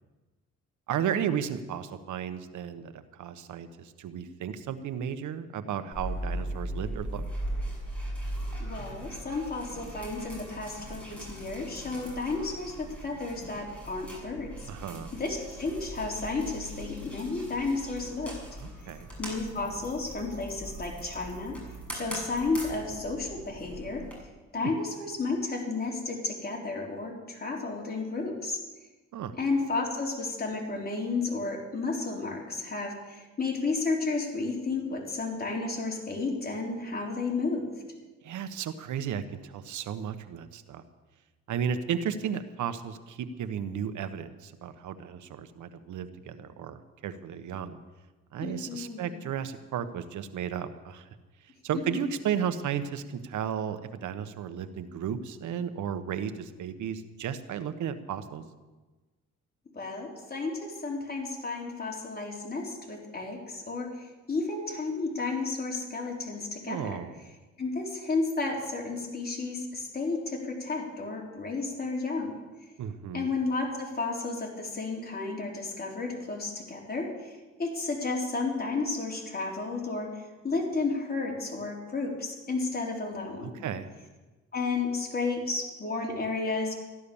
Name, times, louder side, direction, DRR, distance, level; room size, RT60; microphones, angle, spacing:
voice 1, 0.9-7.3 14.7-15.1 18.6-19.1 24.6-24.7 29.1-29.4 38.2-40.8 41.5-47.8 48.3-51.1 51.4-58.4 66.7-67.1 72.8-73.3 83.4-83.9, right 8 dB, 75° right, 10 dB, 1.2 m, -34 dB
sound 1, 5.9-24.2, right 1 dB, 5° left, 7.1 m, -39 dB
voice 2, 8.6-14.7 15.1-18.4 19.2-21.6 21.9-24.0 24.5-28.6 29.4-37.7 48.4-49.2 59.7-67.0 67.6-72.4 73.1-83.5 84.5-86.7, left 3 dB, 30° left, -1 dB, 4.0 m, -32 dB
15.0 x 11.5 x 7.1 m, 1.2 s
cardioid pair, 90°, 30 cm